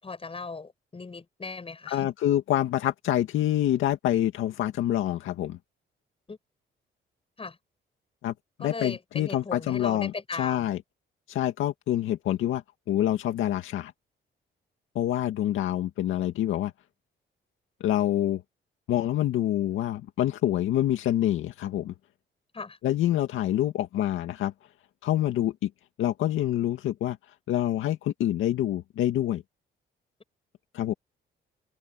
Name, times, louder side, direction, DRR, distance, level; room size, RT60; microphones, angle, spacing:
voice 1, 0.0-2.1 6.3-6.4 7.4-7.6 8.6-10.7 22.5-22.8, left 4 dB, 30° left, 7.5 m, -37 dB
voice 2, 1.9-5.6 8.2-8.3 8.6-10.8 11.3-12.6 12.9-13.9 15.0-16.7 17.8-18.4 18.9-21.9 22.8-24.5 25.0-25.7 26.0-27.2 27.5-29.4 30.7-30.9, left 12 dB, 85° left, 2.0 m, -26 dB
cardioid pair, 90°, 20 cm